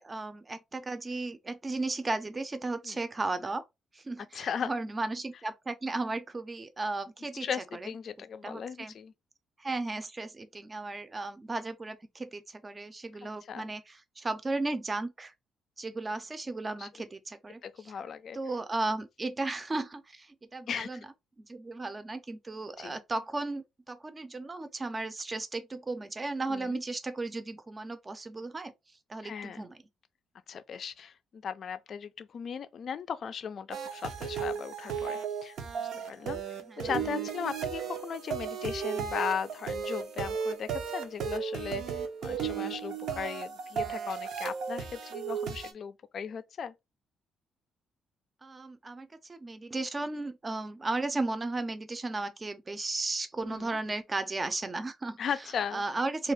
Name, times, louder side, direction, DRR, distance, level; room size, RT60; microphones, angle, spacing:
voice 1, 0.0-3.6 3.9-7.5 7.7-7.9 8.2-8.9 9.6-15.3 15.8-17.6 18.3-21.0 21.4-28.7 29.1-29.7 35.9-36.1 36.7-36.8 48.4-55.2 55.7-56.3, right 2 dB, 25° right, 0.5 m, -35 dB
voice 2, 4.3-4.8 7.4-9.1 13.5-13.7 16.8-16.9 17.6-18.4 20.7-21.0 22.8-23.0 26.5-26.8 29.2-29.7 30.5-36.4 36.8-46.7 53.5-53.8 55.2-55.8, left 7 dB, 55° left, 0.4 m, -37 dB
sound 1, 33.7-45.7, right 7 dB, 75° right, 0.5 m, -35 dB
2.7 x 2.4 x 3.2 m
cardioid pair, 90°, 0 cm